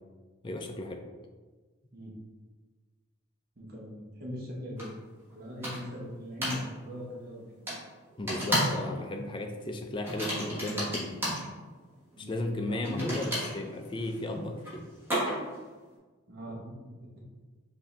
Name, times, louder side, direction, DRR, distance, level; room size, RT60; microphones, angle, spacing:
voice 1, 0.4-1.0 8.2-11.2 12.2-14.9, left 1 dB, 25° left, 4 dB, 0.4 m, -35 dB
voice 2, 3.6-4.9 5.3-7.5 12.2-12.3 12.7-13.1 16.3-16.9, left 1 dB, 50° right, -3 dB, 0.9 m, -40 dB
sound 1, 4.8-4.9 5.6-6.0 6.4-6.6 7.7-7.8 8.3-8.8 9.1-9.4 10.0-11.4 12.8-15.6, equal, 10° right, 1.2 m, -32 dB
4.9 x 2.7 x 3.3 m, 1.4 s
head